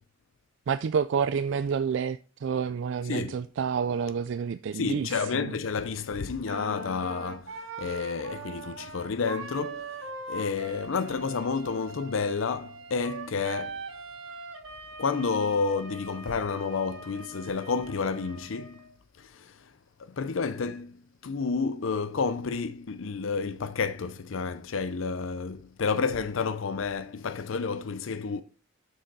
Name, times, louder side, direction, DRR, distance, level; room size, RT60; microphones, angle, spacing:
voice 1, 0.7-5.6, right 6 dB, 65° right, 0.3 m, -29 dB
voice 2, 4.7-9.9 10.3-13.8 15.0-18.8 19.3-19.5 20.2-20.9 21.2-28.4, left 5 dB, 75° left, 0.5 m, -30 dB
Wind instrument woodwind instrument, 6.4-18.9, right 3 dB, 80° right, 4.2 m, -41 dB
7.9 x 6.4 x 4.1 m
head